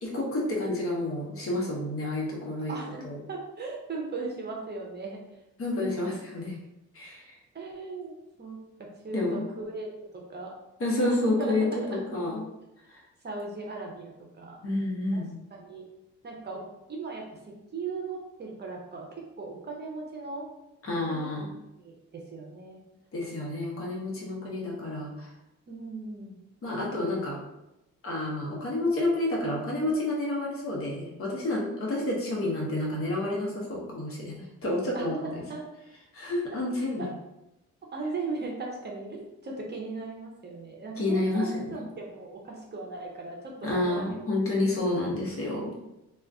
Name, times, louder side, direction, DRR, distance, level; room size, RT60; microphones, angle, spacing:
voice 1, 0.0-2.7 3.0-3.2 5.6-6.5 6.9-7.2 9.1-9.4 10.8-12.4 12.9-13.0 14.6-15.3 20.8-21.5 23.1-25.3 26.6-27.4 28.0-35.4 36.1-37.0 41.0-41.8 43.6-45.7, left 2 dB, 45° left, -3 dB, 1.0 m, -29 dB
voice 2, 2.7-5.2 5.8-6.2 7.5-8.1 8.4-9.9 10.1-10.5 11.1-11.6 11.9-12.0 13.2-14.6 15.1-15.2 15.5-15.8 16.2-16.6 16.9-20.4 21.1-21.3 21.8-22.8 25.7-26.4 34.9-35.1 35.5-35.6 37.0-37.1 37.9-44.9, right 3 dB, 35° right, -1 dB, 0.7 m, -38 dB
2.4 x 2.4 x 3.5 m, 0.90 s
cardioid pair, 90°, 30 cm